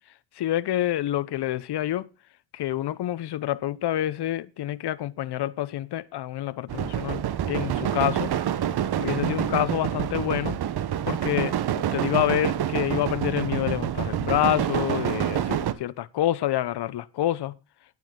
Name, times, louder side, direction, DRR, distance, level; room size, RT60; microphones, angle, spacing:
voice 1, 0.4-2.1 2.5-8.3 9.0-10.6 11.1-11.6 11.9-17.5, left 13 dB, 85° left, 0.9 m, -27 dB
sound 1, 6.7-15.7, right 10 dB, 75° right, 1.2 m, -27 dB
11.5 x 9.4 x 3.8 m
cardioid pair, 95°, 39 cm